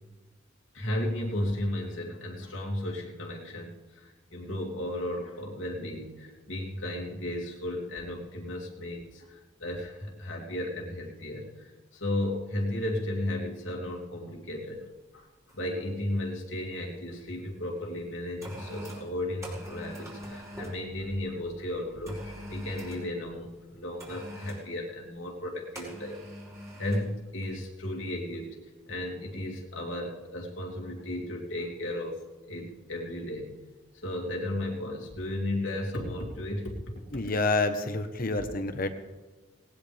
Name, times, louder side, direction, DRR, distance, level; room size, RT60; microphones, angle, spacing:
voice 1, 0.7-14.8 15.1-15.3 15.5-26.2 26.7-28.6 28.9-32.2 32.5-33.5 33.9-36.8 37.1-37.2 38.4-38.5, left 1 dB, 90° left, 0 dB, 2.9 m, -34 dB
sound 1, 14.6-14.8 15.5-17.2 17.9-20.8 22.0-23.1 24.0-24.7 25.7-27.1 27.4-27.6, equal, 15° right, 4.8 m, -43 dB
voice 2, 37.1-38.9, left 2 dB, 50° left, 8 dB, 1.2 m, -28 dB
19.0 x 18.0 x 3.5 m, 1.2 s
head